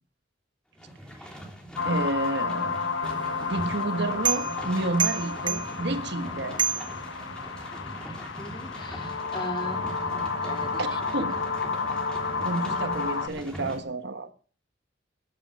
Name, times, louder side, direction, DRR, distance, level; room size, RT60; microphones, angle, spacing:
sound 1, 0.8-13.8, equal, 5° left, 3.4 m, -42 dB
sound 2, 1.8-13.3, left 4 dB, 70° left, 1.4 m, -31 dB
voice 1, 1.8-2.9 3.4-6.6 10.8-11.3 12.4-14.3, right 2 dB, 60° right, 1.2 m, -30 dB
sound 3, 3.0-7.7, right 7 dB, 25° right, 0.9 m, -32 dB
voice 2, 8.4-10.8, left 1 dB, 25° left, 2.2 m, -39 dB
14.0 x 7.5 x 8.2 m
head